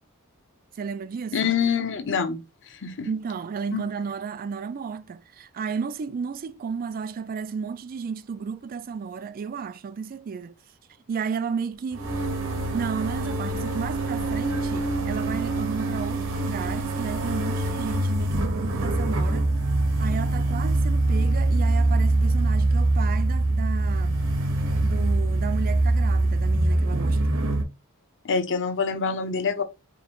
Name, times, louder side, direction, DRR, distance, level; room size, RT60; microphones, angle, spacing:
voice 1, 0.8-1.4 3.1-10.6 11.1-12.1 12.7-19.5 20.0-24.2 24.8-27.2, right 6 dB, 40° right, 0.3 m, -33 dB
voice 2, 1.3-2.4 2.7-3.1 3.7-3.9 28.2-29.6, left 6 dB, 55° left, 0.8 m, -26 dB
sound 1, 11.9-27.6, right 2 dB, 65° right, 1.1 m, -24 dB
4.9 x 2.5 x 3.0 m
head